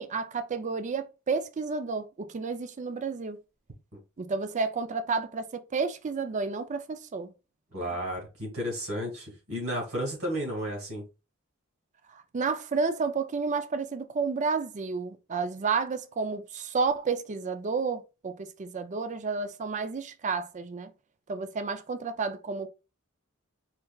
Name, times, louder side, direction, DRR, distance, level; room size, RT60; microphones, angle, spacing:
voice 1, 0.0-3.4 4.2-7.3 7.7-7.9 12.1-20.9 21.3-22.7, right 4 dB, 35° right, 0.4 m, -31 dB
voice 2, 7.7-11.0, equal, 80° right, 2.0 m, -33 dB
4.5 x 3.2 x 2.3 m
head